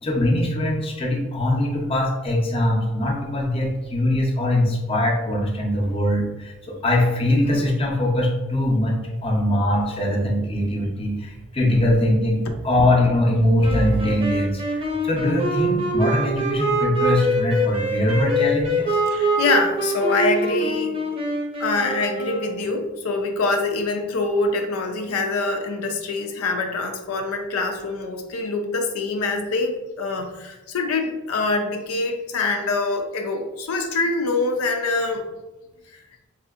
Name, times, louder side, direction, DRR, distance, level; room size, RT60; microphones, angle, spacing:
voice 1, 0.0-19.0, left 1 dB, 25° left, -1 dB, 0.6 m, -22 dB
sound 1, 13.6-22.8, right 1 dB, 25° right, 0.6 m, -24 dB
voice 2, 19.1-21.0 21.6-35.3, left 3 dB, 90° left, 5 dB, 0.4 m, -24 dB
4.1 x 2.7 x 2.4 m, 1.1 s
head